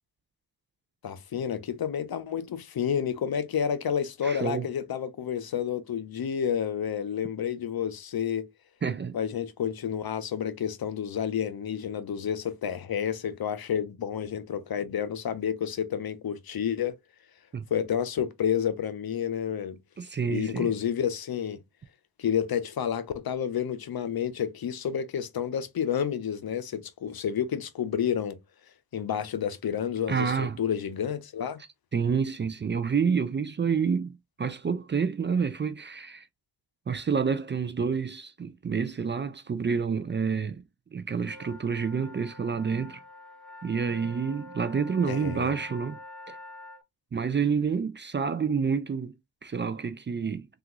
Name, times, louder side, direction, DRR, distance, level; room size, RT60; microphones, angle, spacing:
voice 1, 1.0-8.5 9.1-17.0 17.7-19.8 20.3-21.6 22.2-28.4 28.9-31.6 45.0-45.5, left 8 dB, 70° left, 0.6 m, -30 dB
voice 2, 4.2-4.7 8.8-9.2 17.5-17.6 20.0-20.7 30.1-30.6 31.9-36.3 36.9-40.6 40.9-43.0 43.6-46.0 46.3-46.4 47.1-49.1 49.4-50.5, right 6 dB, 30° right, 0.4 m, -28 dB
sound 1, 41.2-46.8, left 2 dB, ahead, 0.8 m, -46 dB
3.4 x 2.4 x 3.0 m
cardioid pair, 50°, 38 cm